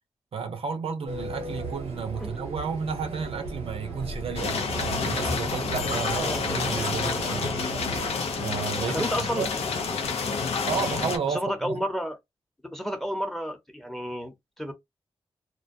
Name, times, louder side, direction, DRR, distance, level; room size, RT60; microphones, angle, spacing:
voice 1, 0.3-7.5 8.3-9.5 10.7-11.8, right 5 dB, 65° right, 0.5 m, -32 dB
Fixed-wing aircraft airplane, 1.1-8.1, right 3 dB, 90° right, 0.9 m, -36 dB
sound 1, 4.4-11.2, left 5 dB, 90° left, 0.5 m, -29 dB
voice 2, 8.9-9.5 11.3-12.2 12.6-14.7, equal, 5° left, 0.8 m, -31 dB
2.2 x 2.2 x 2.6 m
cardioid pair, 50°, 10 cm